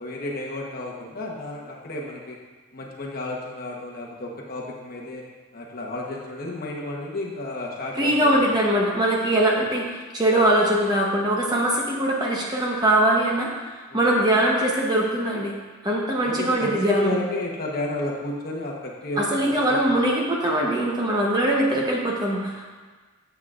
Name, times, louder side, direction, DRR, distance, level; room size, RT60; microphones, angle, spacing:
voice 1, 0.0-2.4 2.7-5.2 5.5-8.5 9.5-9.6 13.9-14.2 16.2-19.9, left 2 dB, 40° left, -2 dB, 1.0 m, -32 dB
voice 2, 7.9-15.5 15.8-17.1 19.2-22.7, right 1 dB, 20° right, -2 dB, 0.8 m, -22 dB
8.3 x 8.0 x 2.4 m, 1.3 s
head